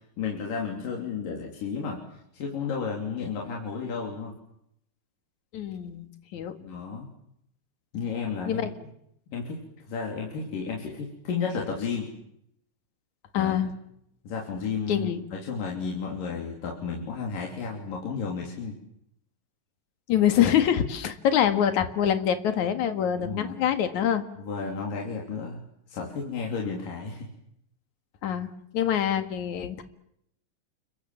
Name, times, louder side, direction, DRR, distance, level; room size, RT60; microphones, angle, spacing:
voice 1, 0.2-2.0 2.3-4.3 6.6-7.1 7.9-8.7 9.3-9.6 9.9-12.1 13.3-13.6 14.2-18.8 23.2-23.6 24.4-25.6 25.9-27.3, left 5 dB, 90° left, -1 dB, 4.8 m, -32 dB
voice 2, 5.5-6.5 8.5-8.7 13.3-13.7 14.9-15.3 20.1-24.2 28.2-28.5 28.7-29.8, left 9 dB, 65° left, 9 dB, 3.0 m, -25 dB
29.5 x 23.5 x 7.3 m, 0.75 s
omnidirectional pair, 3.8 m